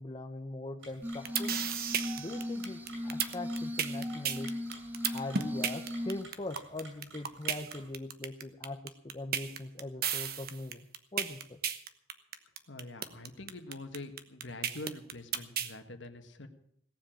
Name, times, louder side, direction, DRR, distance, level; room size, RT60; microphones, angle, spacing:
voice 1, 0.0-1.5 2.2-4.5 5.1-10.9 11.1-11.6, left 2 dB, 25° left, 6 dB, 0.8 m, -41 dB
sound 1, 0.8-7.9, right 2 dB, 85° right, 7.8 m, -53 dB
Glass, 1.0-6.2, left 1 dB, 10° right, 1.1 m, -38 dB
sound 2, 1.0-15.7, right 8 dB, 55° right, 1.1 m, -33 dB
voice 2, 12.7-16.5, left 2 dB, 75° left, 7 dB, 1.7 m, -45 dB
18.0 x 7.5 x 8.9 m, 0.69 s
head